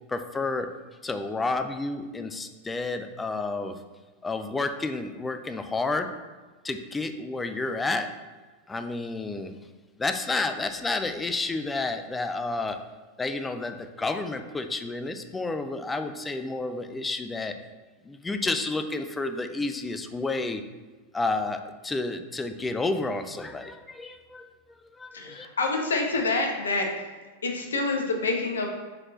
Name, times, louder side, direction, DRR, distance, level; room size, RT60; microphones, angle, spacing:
voice 1, 0.1-0.7 1.0-3.8 4.2-6.2 6.6-8.1 8.7-9.5 10.0-12.8 13.2-17.6 18.1-20.6 21.1-24.5 25.0-25.5, left 3 dB, 10° left, 8 dB, 0.5 m, -30 dB
voice 2, 25.1-26.9 27.4-28.7, left 3 dB, 70° left, 2 dB, 1.1 m, -27 dB
6.5 x 4.3 x 4.3 m, 1.3 s
figure-of-eight pair, 90°, 0 cm